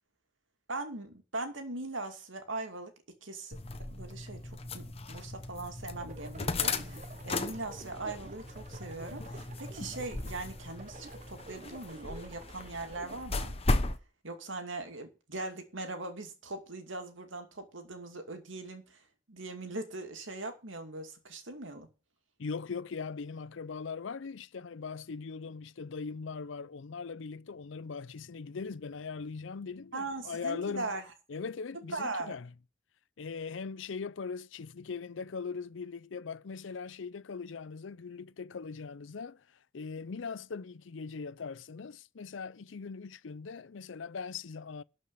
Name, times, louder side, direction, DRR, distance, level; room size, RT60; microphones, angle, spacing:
voice 1, 0.7-2.9 3.2-3.6 3.9-13.5 14.2-21.9 29.9-31.0 31.9-32.4, right 2 dB, 80° right, 2.5 m, -40 dB
sound 1, 3.5-14.0, left 2 dB, 30° left, 1.0 m, -36 dB
sound 2, 5.9-13.3, right 3 dB, 40° right, 0.8 m, -50 dB
voice 2, 22.4-30.9 31.3-32.5 33.2-44.8, left 5 dB, 75° left, 0.5 m, -40 dB
12.5 x 5.3 x 7.1 m
head